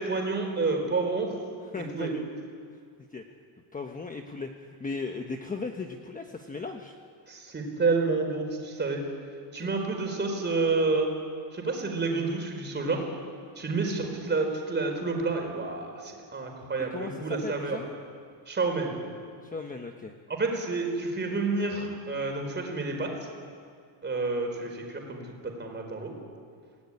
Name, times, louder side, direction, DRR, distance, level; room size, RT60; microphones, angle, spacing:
voice 1, 0.0-1.3 1.7-2.1 7.3-9.0 9.5-11.1 11.5-13.0 13.6-17.8 18.5-19.0 20.3-23.1 24.0-26.1, right 3 dB, 20° right, 3 dB, 4.5 m, -29 dB
voice 2, 1.7-2.2 3.1-3.2 3.7-6.9 9.6-9.7 16.9-17.8 19.4-20.1, left 4 dB, 15° left, 3 dB, 1.2 m, -37 dB
27.5 x 18.0 x 9.9 m, 2.2 s
cardioid pair, 155°, 49 cm